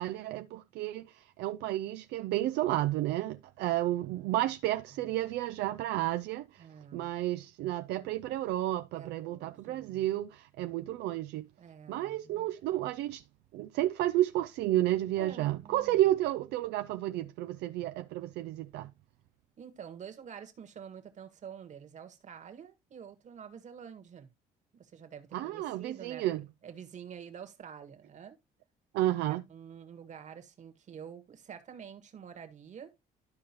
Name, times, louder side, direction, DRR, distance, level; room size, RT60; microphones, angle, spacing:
voice 1, 0.0-6.7 6.9-11.5 11.9-13.2 13.5-18.9 25.3-26.4 28.9-29.4, right 14 dB, 80° right, 0.5 m, -31 dB
voice 2, 4.1-4.4 4.9-5.1 6.6-7.1 8.9-10.1 11.6-12.8 15.2-16.1 19.6-24.3 24.7-26.2 26.6-28.4 29.3-32.9, right 8 dB, 45° right, 1.6 m, -48 dB
12.5 x 4.8 x 3.0 m
cardioid pair, 110°, 17 cm